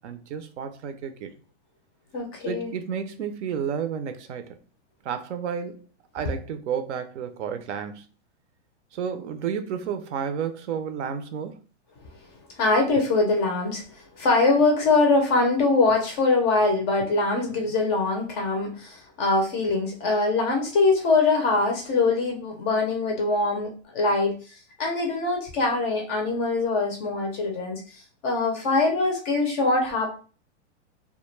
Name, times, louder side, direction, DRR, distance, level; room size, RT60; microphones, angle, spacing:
voice 1, 0.0-1.3 2.4-4.6 5.0-5.8 6.1-8.1 8.9-11.6, right 7 dB, 80° right, 0.6 m, -31 dB
voice 2, 2.1-2.7 12.6-13.8 14.2-24.4 24.8-27.8 28.2-30.1, left 3 dB, 25° left, 0.3 m, -23 dB
2.2 x 2.0 x 3.0 m
supercardioid pair, 150°, 35 cm